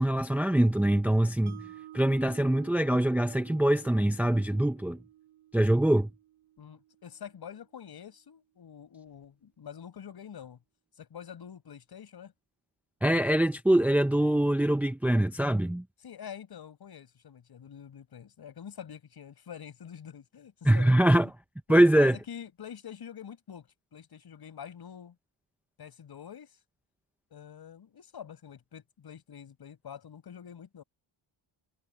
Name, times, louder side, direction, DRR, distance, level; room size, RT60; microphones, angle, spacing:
voice 1, 0.0-1.6 1.9-5.0 5.5-6.1 13.0-15.8 20.6-21.3 21.7-22.2, right 1 dB, 5° right, 0.7 m, -23 dB
Mallet percussion, 1.5-7.6, right 13 dB, 80° right, 4.6 m, -52 dB
voice 2, 6.6-10.6 11.0-12.3 16.0-21.3 21.7-25.2 25.8-26.5 27.3-30.8, left 8 dB, 50° left, 6.2 m, -46 dB
cardioid pair, 140°, 47 cm